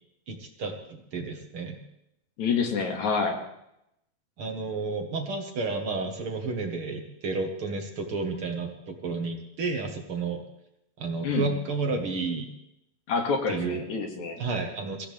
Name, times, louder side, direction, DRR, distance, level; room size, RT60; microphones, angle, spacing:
voice 1, 0.3-1.8 4.4-10.4 11.0-12.5 13.5-13.8 14.4-15.1, right 4 dB, 50° right, 3 dB, 2.2 m, -31 dB
voice 2, 2.4-3.4 11.2-11.5 13.1-14.4, left 5 dB, 75° left, 3 dB, 3.4 m, -27 dB
24.0 x 15.5 x 3.4 m, 0.81 s
omnidirectional pair, 3.4 m